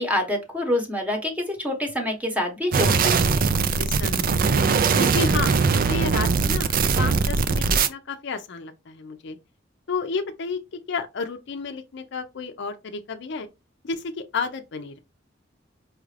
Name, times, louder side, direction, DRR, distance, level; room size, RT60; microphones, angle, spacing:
voice 1, 0.0-3.4, left 1 dB, 10° right, 0.9 m, -26 dB
sound 1, 2.7-7.9, right 5 dB, 50° right, 0.4 m, -21 dB
voice 2, 3.8-4.6 5.0-9.4 9.9-10.6 10.9-13.5 13.8-15.0, left 4 dB, 65° left, 0.5 m, -31 dB
4.8 x 2.4 x 3.2 m
head